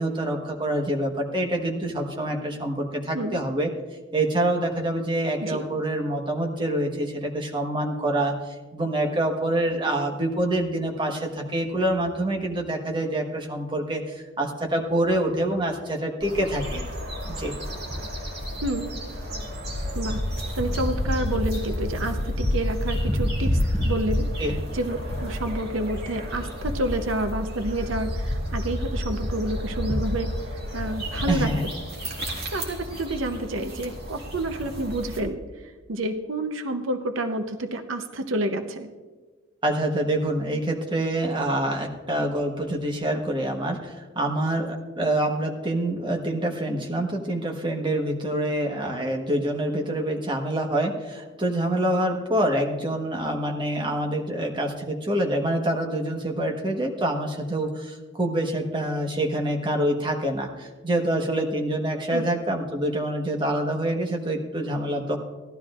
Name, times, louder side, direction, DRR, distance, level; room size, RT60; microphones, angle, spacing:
voice 1, 0.0-3.7 4.1-16.8 17.4-17.5 24.4-24.6 31.3-31.6 39.6-65.2, right 1 dB, 25° right, 1 dB, 1.3 m, -26 dB
sound 1, 16.2-35.2, left 1 dB, 55° right, 2.1 m, -29 dB
voice 2, 18.6-19.0 19.9-20.3 20.6-30.4 30.7-31.5 32.5-35.4 35.9-38.9 62.1-62.2, right 1 dB, 90° right, 8 dB, 0.8 m, -29 dB
17.0 x 12.0 x 2.5 m, 1.3 s
head